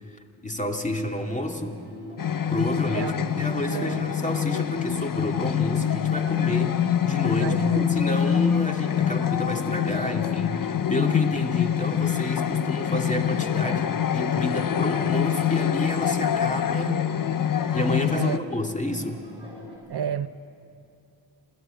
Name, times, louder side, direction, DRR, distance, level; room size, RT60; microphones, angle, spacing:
voice 1, 0.0-1.8 2.5-17.1 17.7-19.2, equal, 15° left, 3 dB, 2.3 m, -30 dB
sound 1, 1.2-19.8, equal, 10° right, 6.7 m, -41 dB
sound 2, 2.2-18.4, left 9 dB, 45° left, 0.7 m, -25 dB
voice 2, 2.9-4.1 7.4-7.9 18.1-18.4 19.9-20.3, right 8 dB, 55° right, 12 dB, 0.7 m, -31 dB
27.5 x 14.0 x 9.1 m, 2.5 s
cardioid pair, 75°, 48 cm